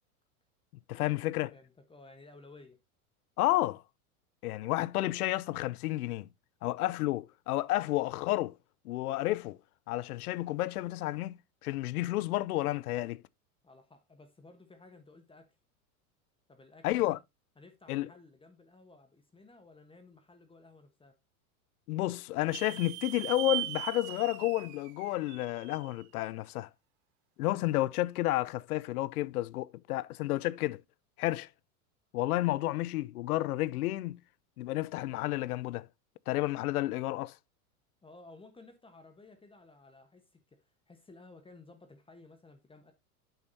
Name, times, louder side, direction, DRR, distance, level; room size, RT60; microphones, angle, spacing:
voice 1, 0.9-1.5 3.4-3.8 4.4-6.3 6.6-8.6 8.8-9.6 9.9-13.2 16.8-17.2 17.9-18.1 21.9-26.7 27.4-30.8 31.2-31.5 32.1-34.2 34.6-35.9 36.3-37.3, left 16 dB, 80° left, 0.6 m, -31 dB
voice 2, 1.5-2.8 13.6-15.5 16.5-17.2 17.6-21.2 38.0-42.9, left 3 dB, 10° left, 1.1 m, -55 dB
sound 1, 22.5-26.0, right 19 dB, 40° right, 0.7 m, -39 dB
8.9 x 6.2 x 2.7 m
hypercardioid pair, 110°, 44 cm